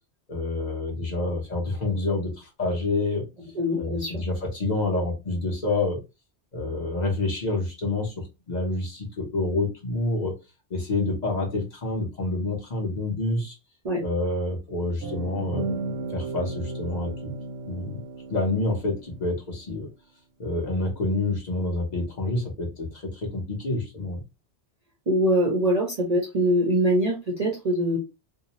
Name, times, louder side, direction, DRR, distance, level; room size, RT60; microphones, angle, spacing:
voice 1, 0.3-3.2 3.8-6.0 6.5-10.3 10.7-13.6 14.0-15.7 16.1-17.3 17.7-18.0 18.3-19.9 20.4-24.2, left 2 dB, 40° left, -2 dB, 0.9 m, -28 dB
voice 2, 3.5-4.2 13.8-14.0 25.1-28.0, equal, 45° right, -1 dB, 0.6 m, -23 dB
sound 1, 15.0-19.2, right 2 dB, 75° right, 0.8 m, -34 dB
2.7 x 2.0 x 2.9 m, 0.26 s
omnidirectional pair, 1.2 m